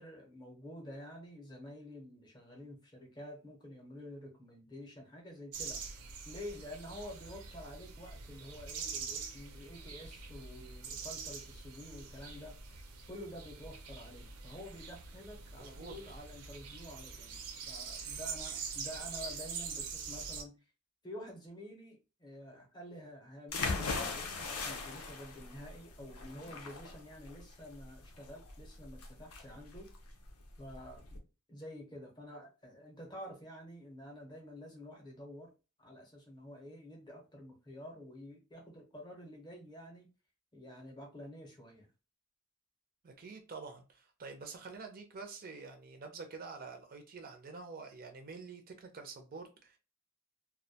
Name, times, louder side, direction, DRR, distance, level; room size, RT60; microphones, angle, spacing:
voice 1, 0.0-6.0 6.2-12.6 13.1-17.4 17.7-20.5 21.0-29.9 30.6-31.2 31.5-35.5 35.8-40.1 40.5-41.9, equal, 20° left, 0.6 m, -49 dB
sound 1, 5.5-20.4, right 5 dB, 85° right, 0.6 m, -44 dB
voice 2, 15.6-15.9 43.0-49.8, right 4 dB, 40° right, 0.4 m, -47 dB
sound 2, 23.5-31.2, left 4 dB, 90° left, 0.6 m, -40 dB
2.3 x 2.1 x 2.7 m
head